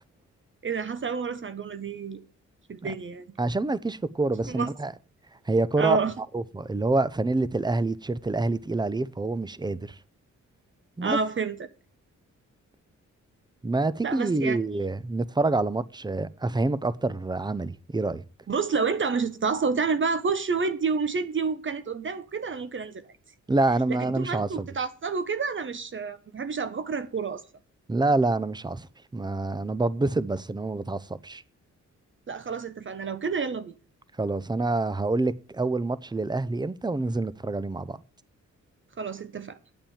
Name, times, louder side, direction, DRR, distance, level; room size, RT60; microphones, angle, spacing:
voice 1, 0.6-2.2 2.7-3.3 4.5-4.7 5.8-6.1 11.0-11.7 14.0-14.6 18.5-23.1 23.9-27.4 32.3-33.7 39.0-39.6, right 4 dB, 40° right, 1.1 m, -29 dB
voice 2, 3.4-4.9 5.5-6.0 6.3-9.9 11.0-11.2 13.6-18.2 23.5-24.7 27.9-28.9 29.1-31.4 34.2-38.0, right 2 dB, 15° right, 0.7 m, -27 dB
8.8 x 8.8 x 7.3 m
cardioid pair, 100°, 30 cm